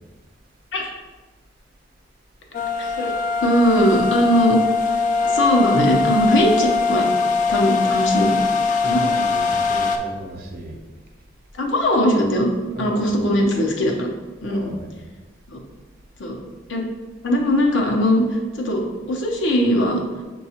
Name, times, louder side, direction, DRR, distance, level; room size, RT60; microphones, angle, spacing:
sound 1, 2.5-10.0, left 4 dB, 45° left, 0.3 m, -21 dB
voice 1, 2.8-3.1 3.4-4.6 5.2-7.1 7.5-8.4 8.7-9.0 11.5-12.5 12.8-14.1 14.4-14.7 15.5-15.6 16.2-16.3 16.7-16.9 17.2-20.0, equal, 85° left, 0 dB, 0.7 m, -20 dB
voice 2, 8.8-10.8 12.7-13.4 14.4-14.9, right 1 dB, 55° right, 0 dB, 0.7 m, -35 dB
6.3 x 2.3 x 2.8 m, 1.3 s
head